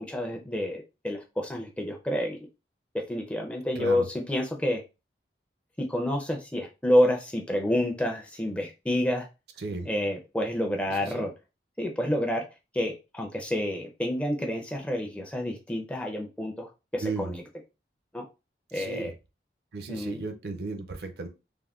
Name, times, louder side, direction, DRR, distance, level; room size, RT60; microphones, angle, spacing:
voice 1, 0.0-2.4 3.1-4.8 5.8-9.3 9.9-11.3 11.8-12.4 12.7-17.4 18.1-18.2 18.7-19.1 19.9-20.2, left 1 dB, 5° left, 1 dB, 0.4 m, -28 dB
voice 2, 3.8-4.1 9.6-9.9 10.9-11.3 17.0-17.4 18.7-19.1 19.7-21.3, right 3 dB, 65° right, 6 dB, 0.5 m, -35 dB
3.4 x 2.1 x 2.3 m, 0.28 s
head